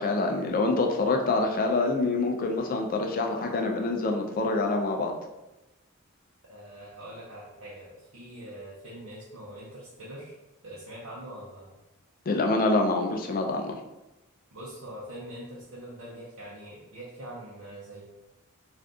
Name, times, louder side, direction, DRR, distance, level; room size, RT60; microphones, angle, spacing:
voice 1, 0.0-5.1 12.3-13.8, left 3 dB, 40° left, 3 dB, 0.4 m, -26 dB
voice 2, 6.5-10.3 10.6-11.8 14.5-18.0, right 1 dB, 70° right, -7 dB, 0.7 m, -43 dB
2.6 x 2.4 x 3.4 m, 1.0 s
head